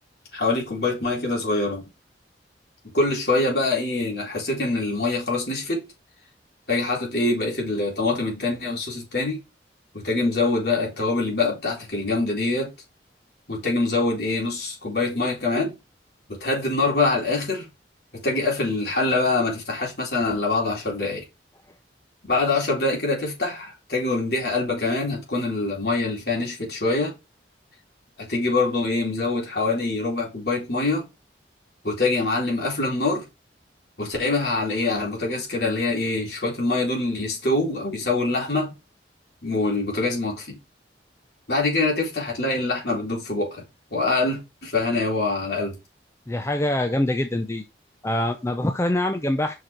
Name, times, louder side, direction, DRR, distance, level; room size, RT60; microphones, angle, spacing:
voice 1, 0.3-1.8 2.9-5.9 6.7-9.4 9.9-12.7 13.5-15.7 16.3-17.7 18.1-21.2 22.3-27.2 28.2-31.1 31.8-33.2 34.0-38.7 39.4-40.6 41.5-43.6 43.9-45.8, left 2 dB, 60° left, 3.8 m, -24 dB
voice 2, 46.3-47.6 48.0-49.5, left 1 dB, 15° left, 0.6 m, -24 dB
5.8 x 5.3 x 4.5 m
head